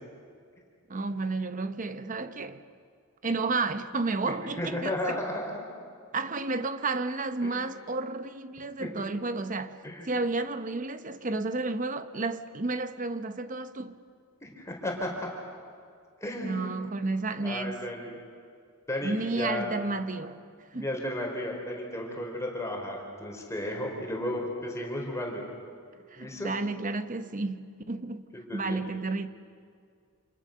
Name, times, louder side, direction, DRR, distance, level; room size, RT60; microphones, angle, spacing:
voice 1, 0.9-2.6 3.2-5.2 6.1-9.8 10.0-14.0 16.4-17.8 19.0-20.4 20.7-20.8 26.1-28.3 28.5-29.3, right 3 dB, 35° right, 0.9 m, -31 dB
voice 2, 4.2-5.6 7.4-7.7 8.8-8.9 9.8-10.1 14.4-15.1 16.2-16.8 17.4-18.2 18.9-19.8 20.7-25.4 26.2-26.5 28.5-28.8, left 1 dB, 15° left, 4.5 m, -34 dB
29.0 x 28.0 x 6.7 m
head